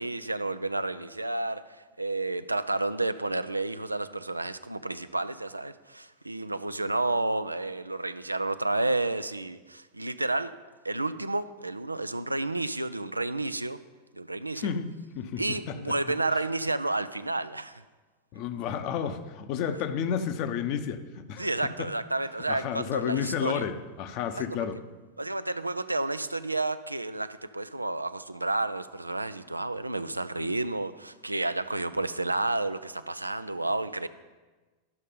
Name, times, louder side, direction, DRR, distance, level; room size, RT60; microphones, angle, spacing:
voice 1, 0.0-1.6 2.0-10.5 10.8-13.8 14.2-14.7 15.4-17.8 21.4-23.6 24.3-24.5 25.2-34.1, right 2 dB, 85° right, 13 dB, 0.4 m, -31 dB
voice 2, 14.5-15.8 16.3-16.4 18.3-21.9 22.5-24.8, left 8 dB, 40° left, 10 dB, 0.8 m, -31 dB
12.0 x 6.4 x 5.4 m, 1.3 s
figure-of-eight pair, 90°, 0 cm